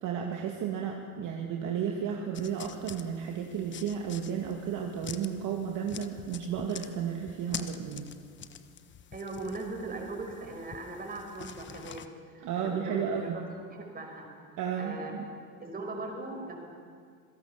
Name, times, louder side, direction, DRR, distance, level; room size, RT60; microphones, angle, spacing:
voice 1, 0.0-8.1 12.4-13.4 14.6-15.3, right 7 dB, 45° right, 1 dB, 2.4 m, -33 dB
sound 1, 2.3-12.1, left 8 dB, 25° left, 1.1 m, -46 dB
voice 2, 9.1-13.4 13.7-14.3 14.8-15.1 15.6-16.6, right 2 dB, 20° right, 2 dB, 5.5 m, -39 dB
27.0 x 17.0 x 7.1 m, 2.1 s
hypercardioid pair, 105°, 45 cm